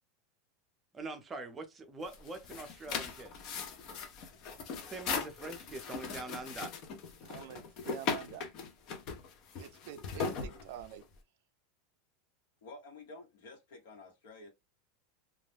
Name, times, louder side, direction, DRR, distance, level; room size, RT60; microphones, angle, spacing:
voice 1, 0.9-3.5 4.9-6.7, right 3 dB, 15° right, 0.5 m, -43 dB
sound 1, 2.0-11.2, left 5 dB, 45° left, 0.6 m, -39 dB
voice 2, 7.2-8.5 9.6-11.0, right 11 dB, 65° right, 0.3 m, -47 dB
voice 3, 12.6-14.5, left 3 dB, 85° left, 1.1 m, -51 dB
2.3 x 2.1 x 3.3 m
supercardioid pair, 145°, 0 cm